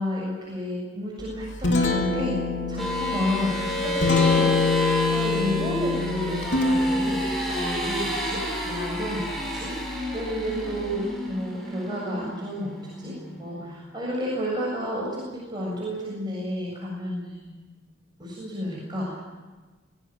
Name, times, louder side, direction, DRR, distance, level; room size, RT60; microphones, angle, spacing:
voice 1, 0.0-2.4 2.7-4.8 5.1-9.7 10.1-17.6 18.2-19.2, equal, 25° right, -4 dB, 7.4 m, -31 dB
Guitar, 1.2-11.0, left 3 dB, 75° left, 3.6 m, -27 dB
sound 1, 2.8-13.6, left 1 dB, ahead, 7.3 m, -30 dB
26.0 x 18.5 x 9.0 m, 1.3 s
head